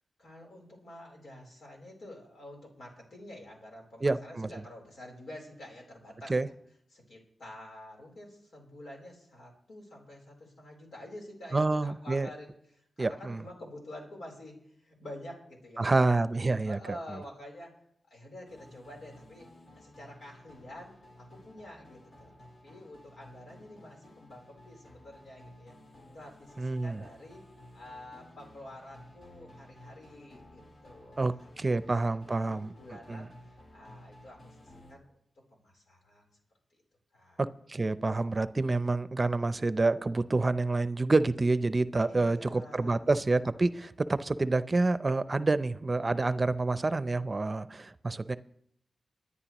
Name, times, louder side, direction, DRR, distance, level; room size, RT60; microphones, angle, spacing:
voice 1, 0.2-6.5 6.9-16.3 16.6-17.8 18.1-19.5 19.8-22.3 22.6-25.7 26.1-27.4 27.7-33.3 33.7-35.2 35.6-36.2 37.1-37.4 42.1-43.1, left 1 dB, 80° left, -1 dB, 3.8 m, -48 dB
voice 2, 4.0-4.5 6.3-6.5 11.5-12.3 13.0-13.4 15.8-16.8 26.6-27.0 31.2-32.7 33.1-33.3 37.4-48.4, right 3 dB, 40° right, 14 dB, 0.6 m, -28 dB
sound 1, 18.5-34.9, left 1 dB, 65° left, 3.6 m, -54 dB
23.0 x 9.7 x 3.0 m, 0.72 s
cardioid pair, 55°, 0 cm